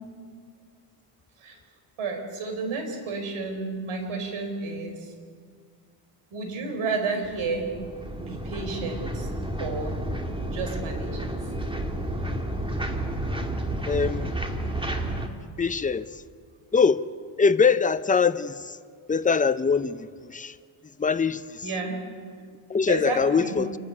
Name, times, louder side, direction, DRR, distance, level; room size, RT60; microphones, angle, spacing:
voice 1, 2.0-5.1 6.3-7.7 8.2-9.3 9.6-10.0 10.5-11.3 21.6-22.0 22.9-23.7, right 4 dB, 80° right, 4.7 m, -31 dB
sound 1, 7.2-15.3, right 1 dB, 10° right, 2.1 m, -31 dB
voice 2, 13.9-14.3 15.6-16.0 16.7-17.0 17.4-18.8 19.1-20.5 21.0-21.6 22.7-23.8, left 5 dB, 15° left, 0.6 m, -23 dB
28.0 x 12.0 x 9.7 m
cardioid pair, 105°, 49 cm